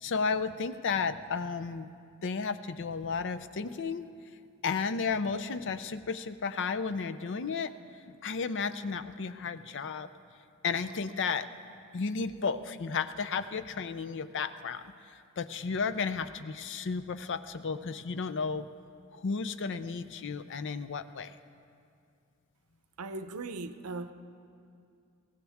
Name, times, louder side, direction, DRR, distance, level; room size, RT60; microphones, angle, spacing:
voice 1, 0.0-1.9 2.2-4.1 4.6-7.7 8.1-10.1 10.6-11.5 11.9-18.7 19.1-21.4, left 5 dB, 55° left, 12 dB, 0.5 m, -33 dB
voice 2, 23.0-24.1, right 3 dB, 85° right, 10 dB, 0.7 m, -38 dB
22.5 x 17.0 x 3.5 m, 2.4 s
head